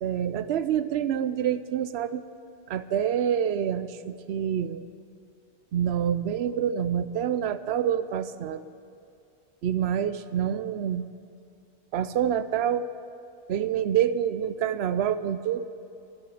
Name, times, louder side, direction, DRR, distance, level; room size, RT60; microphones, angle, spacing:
voice 1, 0.0-2.2 2.7-4.9 5.7-8.6 9.6-11.1 11.9-12.9 13.5-15.7, right 9 dB, 70° right, 14 dB, 0.8 m, -27 dB
13.5 x 8.6 x 8.4 m, 2.6 s
omnidirectional pair, 1.2 m